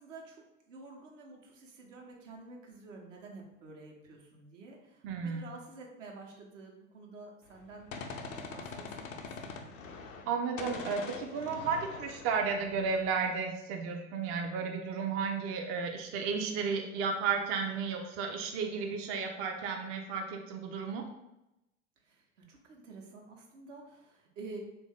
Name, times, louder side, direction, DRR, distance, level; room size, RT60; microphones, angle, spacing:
voice 1, 0.0-7.9 8.2-9.7 22.0-24.6, right 3 dB, 70° right, 0 dB, 0.9 m, -50 dB
voice 2, 5.0-5.5 10.3-21.0, right 5 dB, 35° right, 2 dB, 0.5 m, -33 dB
Gunshot gunfire, 7.5-10.3 10.6-13.3, left 4 dB, 80° left, 0.5 m, -43 dB
3.2 x 2.6 x 3.5 m, 0.91 s
figure-of-eight pair, 75°, 38 cm